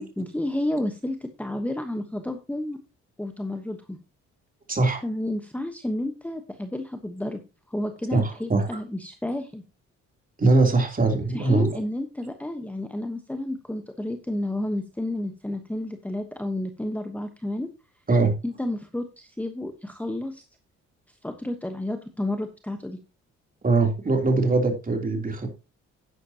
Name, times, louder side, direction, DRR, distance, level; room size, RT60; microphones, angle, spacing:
voice 1, 0.0-2.8 3.2-4.0 5.0-7.4 7.7-9.6 11.3-17.7 18.4-20.4 21.2-23.0, left 1 dB, 5° left, 7 dB, 1.1 m, -31 dB
voice 2, 4.7-5.0 8.1-8.6 10.4-11.7 18.1-18.3 23.6-25.5, right 3 dB, 30° right, 4 dB, 3.2 m, -21 dB
10.5 x 9.7 x 2.9 m, 0.29 s
cardioid pair, 90°, 30 cm